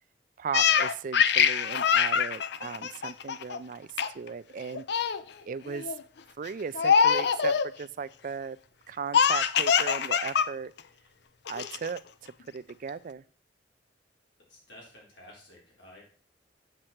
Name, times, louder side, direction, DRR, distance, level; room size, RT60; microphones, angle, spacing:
voice 1, 0.4-3.9 4.1-4.8 5.5-5.9 6.4-8.6 8.9-10.7 11.5-13.2, right 6 dB, 50° right, 17 dB, 0.4 m, -37 dB
Laughter, 0.5-3.6 4.0-4.3 4.6-5.2 5.7-6.0 6.7-7.7 9.1-10.5 10.8-10.9 11.5-12.0, left 7 dB, 65° left, 0.5 m, -24 dB
voice 2, 14.5-16.0, left 1 dB, 90° left, -3 dB, 4.2 m, -52 dB
8.1 x 7.4 x 4.4 m, 0.43 s
head